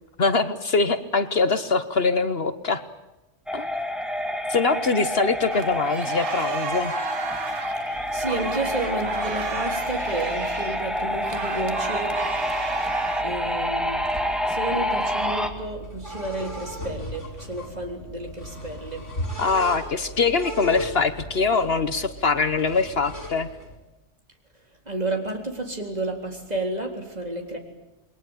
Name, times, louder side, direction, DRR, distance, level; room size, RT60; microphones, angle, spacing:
voice 1, 0.2-2.8 3.5-3.7 4.5-6.9 19.4-23.5, left 4 dB, 55° left, 11 dB, 1.3 m, -23 dB
sound 1, 3.5-15.5, equal, ahead, 2.0 m, -28 dB
sound 2, 5.5-13.2, right 6 dB, 85° right, 1.5 m, -34 dB
voice 2, 7.8-12.2 13.2-19.1 19.4-19.5 24.9-27.6, right 2 dB, 35° right, 2 dB, 4.0 m, -31 dB
sound 3, 7.9-23.8, equal, 85° left, 5.6 m, -38 dB
28.0 x 21.5 x 9.0 m, 1.0 s
omnidirectional pair, 1.2 m